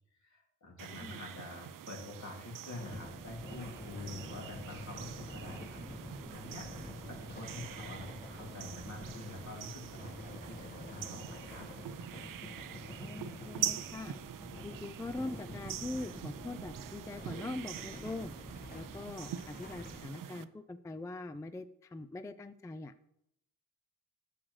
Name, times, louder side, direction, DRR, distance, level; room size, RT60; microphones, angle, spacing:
voice 1, 0.2-6.7 7.1-11.7, left 2 dB, 60° left, -1 dB, 2.6 m, -47 dB
sound 1, 0.8-20.4, right 11 dB, 80° right, 0.5 m, -44 dB
sound 2, 2.6-16.8 17.1-20.0, left 2 dB, 30° left, 1.3 m, -49 dB
sound 3, 2.9-20.1, equal, 10° right, 1.2 m, -53 dB
voice 2, 13.0-14.1 14.6-18.3 18.7-22.9, left 2 dB, 10° left, 11 dB, 0.3 m, -42 dB
9.9 x 7.5 x 3.2 m, 0.80 s
cardioid pair, 80°, 32 cm